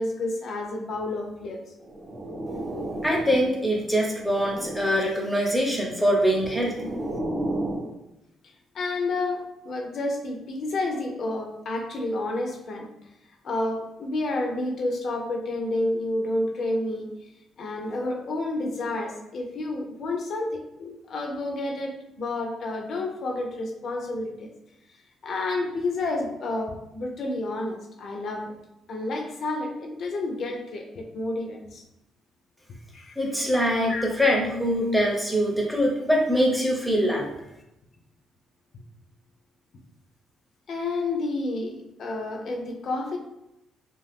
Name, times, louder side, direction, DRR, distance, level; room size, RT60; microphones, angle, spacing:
voice 1, 0.0-1.6 8.7-12.9 13.4-17.1 17.6-24.5 25.2-28.5 28.9-31.8 32.9-33.2 33.5-34.0 40.7-43.2, left 2 dB, 60° left, 2 dB, 0.6 m, -30 dB
sound 1, 1.8-3.6 4.0-5.1 6.0-7.9, right 1 dB, 45° right, 0.7 m, -33 dB
voice 2, 3.0-6.8 33.2-37.3, equal, 5° left, -1 dB, 0.6 m, -23 dB
2.5 x 2.3 x 3.4 m, 0.88 s
cardioid pair, 110°, 0 cm